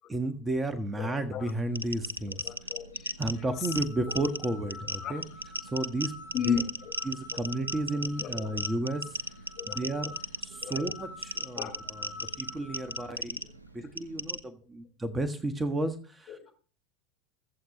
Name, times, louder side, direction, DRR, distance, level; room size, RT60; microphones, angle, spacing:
voice 1, 0.1-2.5 3.2-5.2 5.6-6.1 6.4-6.6 7.0-9.2 9.7-10.1 10.4-12.1 12.4-13.4 13.7-16.4, right 2 dB, 15° right, 9 dB, 1.4 m, -32 dB
voice 2, 1.0-1.5 2.3-3.1 3.6-3.7 5.0-5.1 6.3-6.9 7.3-7.4 8.2-8.5 9.6-9.8 10.6-10.8 11.5-11.8 16.3-16.6, left 8 dB, 45° left, 3 dB, 4.4 m, -35 dB
sound 1, 1.5-14.4, right 1 dB, 90° right, 0.8 m, -37 dB
sound 2, 3.2-13.0, left 3 dB, 80° left, 6.4 m, -47 dB
23.0 x 8.0 x 3.0 m, 0.40 s
figure-of-eight pair, 80°, 0 cm